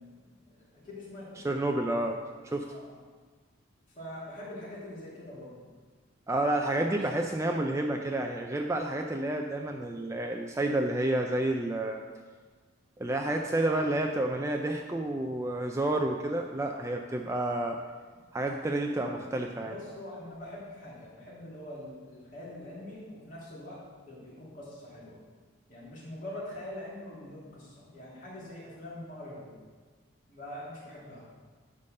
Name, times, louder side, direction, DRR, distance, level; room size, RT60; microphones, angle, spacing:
voice 1, 0.0-1.5 2.6-3.0 3.9-5.6 6.9-7.0 13.6-13.7 18.8-19.1 19.6-23.8 24.1-25.2 25.7-29.5 30.3-31.2, left 1 dB, 40° left, -8 dB, 2.9 m, -44 dB
voice 2, 1.4-2.7 6.3-12.0 13.0-17.8 18.3-19.7, right 1 dB, 15° right, 3 dB, 0.3 m, -30 dB
10.5 x 3.8 x 6.5 m, 1.5 s
head